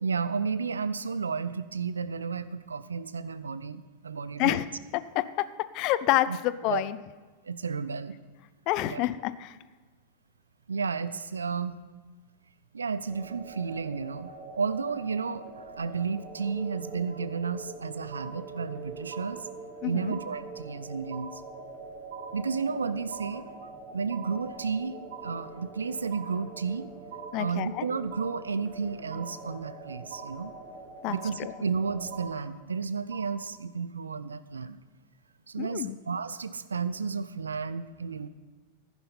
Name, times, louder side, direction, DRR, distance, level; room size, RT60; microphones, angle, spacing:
voice 1, 0.0-4.6 6.3-6.4 6.7-6.8 7.5-8.1 8.8-9.0 10.7-11.8 12.7-19.5 19.8-21.4 22.3-26.9 27.4-30.5 31.1-34.8 35.5-38.3, right 5 dB, 75° right, 15 dB, 0.5 m, -32 dB
voice 2, 4.9-5.3 5.7-7.0 8.7-9.6 19.8-20.1 27.3-27.8 31.0-31.5 35.6-36.0, left 15 dB, 40° left, 16 dB, 0.5 m, -28 dB
sound 1, 13.1-32.3, right 3 dB, 20° right, 2.8 m, -44 dB
sound 2, 18.1-18.8 19.1-19.8 20.1-20.8 21.1-21.8 22.1-22.8 23.1-23.8 24.1-24.8 25.1-25.8 26.1-26.8 27.1-27.8 28.1-28.8 29.1-29.8 30.1-30.8 31.1-31.8 32.1-32.8 33.1-33.4, right 7 dB, 55° right, 1.1 m, -45 dB
15.0 x 10.5 x 4.1 m, 1.3 s
figure-of-eight pair, 90°, 0 cm